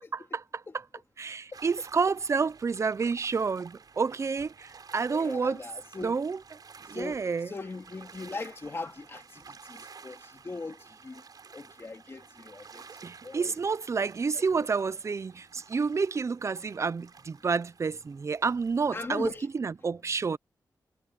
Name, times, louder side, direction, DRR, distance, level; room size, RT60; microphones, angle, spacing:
voice 1, 1.2-5.6 6.0-6.4 6.9-7.5 13.0-20.4, right 5 dB, 40° right, 0.5 m, -29 dB
sound 1, 1.5-19.4, right 5 dB, 60° right, 4.6 m, -52 dB
voice 2, 5.1-6.2 6.9-10.8 11.0-11.2 11.5-12.8 13.2-13.5 14.3-14.7 18.9-19.5, left 3 dB, 35° left, 2.7 m, -40 dB
wide cardioid pair, 160°, 7 cm